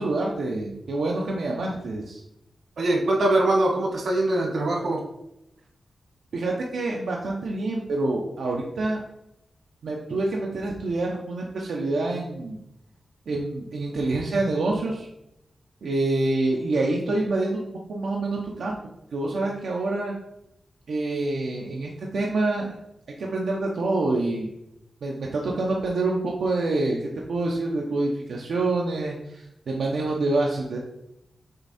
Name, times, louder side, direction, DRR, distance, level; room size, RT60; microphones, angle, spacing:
voice 1, 0.0-2.2 6.3-9.0 9.8-12.6 13.3-15.1 15.8-17.6 17.9-18.8 19.1-20.1 20.9-22.8 23.2-24.5 25.0-27.0 27.3-30.8, right 2 dB, 90° right, -2 dB, 0.8 m, -26 dB
voice 2, 2.8-5.0, right 2 dB, 65° right, 0 dB, 1.5 m, -22 dB
6.6 x 3.6 x 4.3 m, 0.85 s
wide cardioid pair, 170°, 0 cm